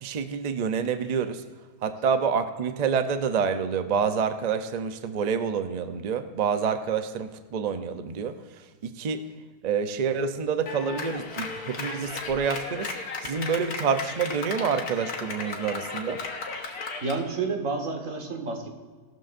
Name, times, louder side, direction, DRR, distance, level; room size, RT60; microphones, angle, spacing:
voice 1, 0.0-1.4 1.8-8.4 8.8-9.3 9.6-12.9 13.2-16.2, right 6 dB, 75° right, 9 dB, 0.3 m, -27 dB
Clapping, 10.7-17.2, left 4 dB, 70° left, 1.7 m, -35 dB
voice 2, 17.0-18.7, right 4 dB, 55° right, 3 dB, 1.9 m, -30 dB
17.5 x 12.5 x 2.6 m, 1.4 s
omnidirectional pair, 1.7 m